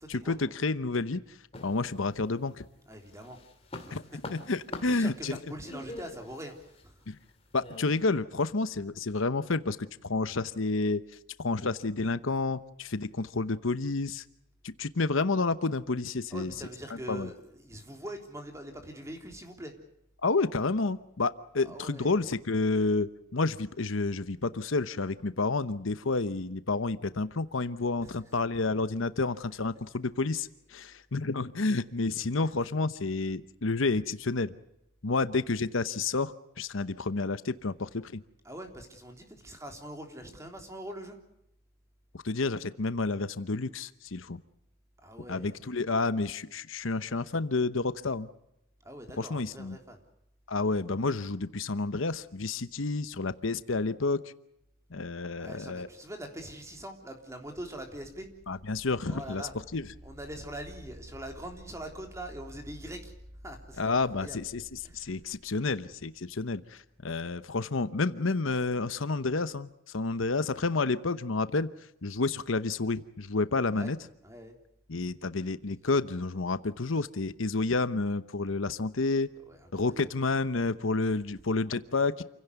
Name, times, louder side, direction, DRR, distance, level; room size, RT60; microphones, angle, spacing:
voice 1, 0.1-2.6 3.9-5.4 7.1-7.2 7.5-11.0 11.4-14.2 14.6-16.5 17.1-17.3 20.2-34.5 35.0-38.2 42.1-44.4 45.3-48.3 49.2-49.8 50.5-54.3 54.9-55.9 58.5-59.9 63.8-71.7 72.0-74.0 74.9-79.3 79.7-82.2, left 3 dB, 70° left, 13 dB, 0.9 m, -30 dB
sound 1, 1.5-2.5 2.9-8.1, left 2 dB, 25° left, 2.5 m, -44 dB
voice 2, 2.9-3.4 3.8-4.0 4.9-7.0 16.3-19.7 21.6-22.3 28.0-28.2 30.9-31.0 38.5-41.2 45.0-45.6 48.8-50.0 55.4-58.3 59.1-59.5 60.0-63.1 63.4-64.4 64.8-65.1 73.7-73.9 74.2-74.6 79.5-80.1, right 1 dB, 15° right, 4 dB, 3.5 m, -43 dB
sound 2, 57.5-66.1, equal, 60° right, 2.5 m, -52 dB
28.5 x 16.5 x 8.2 m, 0.82 s
head